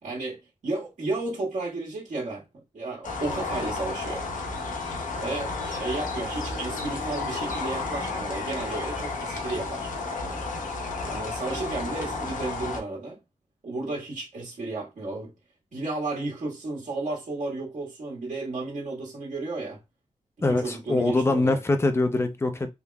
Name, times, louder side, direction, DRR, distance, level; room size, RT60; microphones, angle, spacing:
voice 1, 0.0-4.2 5.1-9.9 11.0-13.2 13.6-15.3 15.7-19.8 20.5-21.6, right 2 dB, 75° right, 1.6 m, -33 dB
sound 1, 3.0-12.8, left 3 dB, 85° left, 0.9 m, -32 dB
voice 2, 20.4-22.7, left 2 dB, 20° left, 0.5 m, -23 dB
3.5 x 2.9 x 2.2 m
wide cardioid pair, 135°, 13 cm